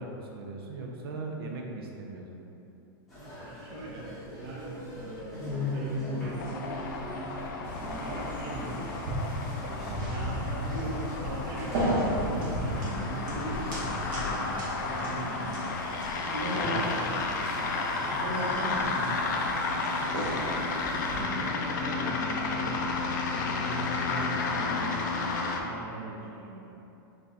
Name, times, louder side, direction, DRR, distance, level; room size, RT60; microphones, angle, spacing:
voice 1, 0.0-2.4 16.5-16.7, right 3 dB, 85° right, 0 dB, 0.5 m, -39 dB
sound 1, 3.1-21.8, left 1 dB, ahead, 0.9 m, -41 dB
voice 2, 3.4-4.1 4.4-6.5 7.7-8.9 9.6-15.8 16.2-17.4 18.1-19.3 20.1-23.0 23.2-25.0 25.5-26.7, right 2 dB, 25° right, -5 dB, 0.6 m, -39 dB
sound 2, 6.4-25.6, left 3 dB, 50° left, 0.4 m, -32 dB
sound 3, 7.6-21.2, equal, 55° right, 1.0 m, -35 dB
4.0 x 2.7 x 3.5 m, 2.8 s
supercardioid pair, 175°, 12 cm